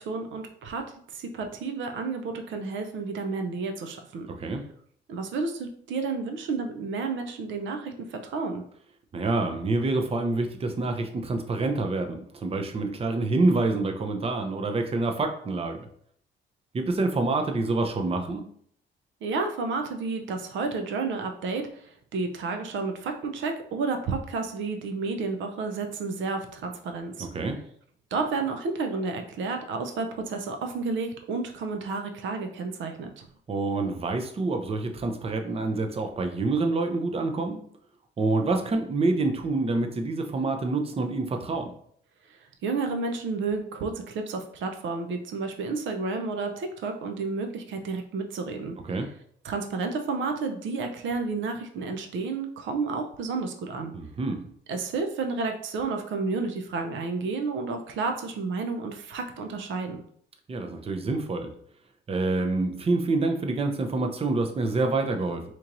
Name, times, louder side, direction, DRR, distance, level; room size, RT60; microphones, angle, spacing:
voice 1, 0.0-4.3 5.1-8.6 19.2-27.3 28.1-33.3 42.3-48.8 49.4-53.9 54.7-60.0, right 4 dB, 75° right, 5 dB, 0.6 m, -31 dB
voice 2, 4.3-4.6 9.1-15.9 16.7-18.4 27.2-27.6 33.5-37.6 38.2-41.8 48.9-49.1 53.9-54.4 60.5-61.5 62.1-65.4, right 3 dB, 30° right, 5 dB, 0.6 m, -27 dB
4.3 x 3.0 x 2.5 m, 0.63 s
cardioid pair, 90°, 20 cm